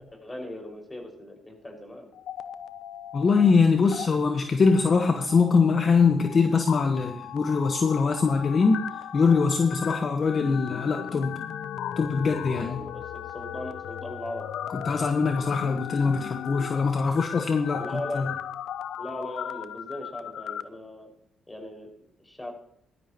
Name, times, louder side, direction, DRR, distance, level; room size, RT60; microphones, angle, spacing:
voice 1, 0.1-2.1 12.5-14.5 17.7-18.4 19.0-21.1 21.5-21.9 22.2-22.5, left 1 dB, 15° left, 2 dB, 5.5 m, -38 dB
sound 1, 2.1-3.5 3.8-4.1 4.6-20.6, left 9 dB, 75° left, 0.7 m, -37 dB
voice 2, 3.1-11.3 12.0-12.8 14.8-17.8 18.1-18.2, left 4 dB, 45° left, 5 dB, 1.3 m, -22 dB
17.5 x 12.5 x 3.0 m, 0.70 s
supercardioid pair, 65°, 0 cm